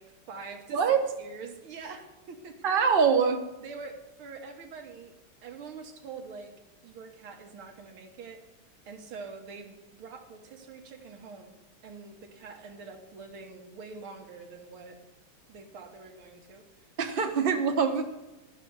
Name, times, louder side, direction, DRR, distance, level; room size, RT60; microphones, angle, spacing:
voice 1, 0.0-2.6 3.6-6.5 6.8-8.4 8.9-15.0 15.5-16.7, right 4 dB, 85° right, 3 dB, 2.3 m, -45 dB
voice 2, 0.7-1.1 2.6-3.4 17.0-18.0, right 6 dB, 40° right, 5 dB, 0.8 m, -24 dB
13.5 x 5.7 x 8.0 m, 1.0 s
omnidirectional pair, 2.3 m